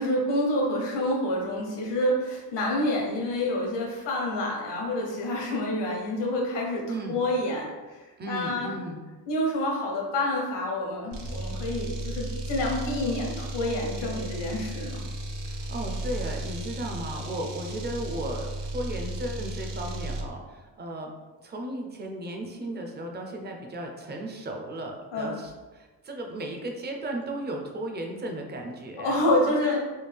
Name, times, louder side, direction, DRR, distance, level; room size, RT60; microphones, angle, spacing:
voice 1, 0.0-8.7 9.3-15.0 25.1-25.4 29.0-29.8, left 1 dB, 80° left, -1 dB, 1.1 m, -28 dB
voice 2, 6.9-7.2 8.2-9.0 15.4-21.1 21.4-29.2 29.5-29.8, right 1 dB, 25° right, 2 dB, 0.4 m, -35 dB
sound 1, 11.1-20.3, right 1 dB, 75° right, 0.7 m, -34 dB
3.5 x 2.3 x 3.3 m, 1.2 s
cardioid pair, 135°, 42 cm